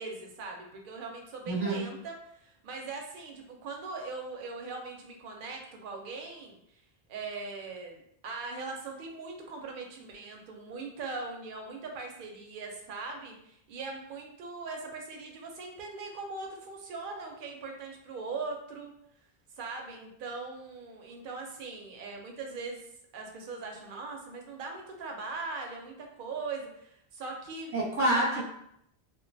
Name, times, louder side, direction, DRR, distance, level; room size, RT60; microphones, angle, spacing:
voice 1, 0.0-6.8 7.1-18.9 19.5-22.8 23.1-27.7 28.1-28.4, right 3 dB, 60° right, 2 dB, 0.7 m, -40 dB
voice 2, 1.5-1.9 27.7-28.4, right 1 dB, 15° right, -5 dB, 0.6 m, -27 dB
2.4 x 2.2 x 2.5 m, 0.74 s
omnidirectional pair, 1.1 m